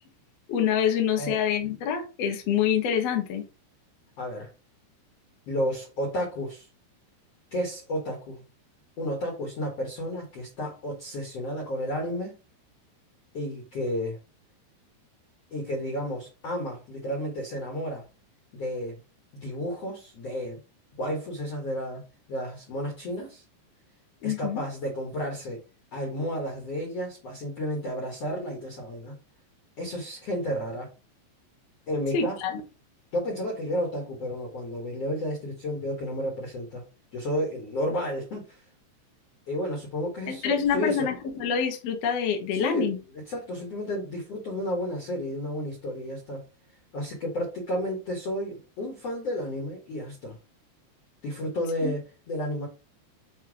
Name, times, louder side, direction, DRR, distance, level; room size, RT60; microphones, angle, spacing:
voice 1, 0.5-3.4 24.2-24.6 32.1-32.5 40.3-43.0 51.8-51.9, left 8 dB, 80° left, 1.4 m, -26 dB
voice 2, 4.2-4.5 5.5-6.7 7.5-8.4 9.0-12.4 13.3-14.2 15.5-18.1 18.5-19.0 19.3-20.6 21.0-22.0 22.3-23.4 24.2-25.6 25.9-29.2 29.8-30.9 31.9-32.6 33.1-36.8 37.1-38.6 39.5-41.1 42.5-42.9 43.3-46.4 46.9-50.4 51.2-52.7, equal, 55° left, 1.9 m, -32 dB
7.0 x 3.0 x 4.8 m
omnidirectional pair, 5.1 m